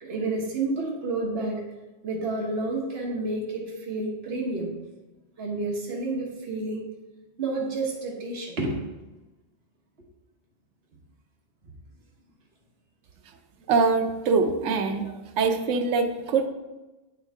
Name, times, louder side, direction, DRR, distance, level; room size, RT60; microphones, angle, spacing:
voice 1, 0.0-1.6 2.0-4.7 5.4-6.8 7.4-8.8, right 2 dB, 55° right, -2 dB, 1.5 m, -30 dB
voice 2, 13.7-16.5, right 4 dB, 75° right, 5 dB, 1.0 m, -24 dB
8.6 x 4.6 x 3.5 m, 1.1 s
omnidirectional pair, 1.3 m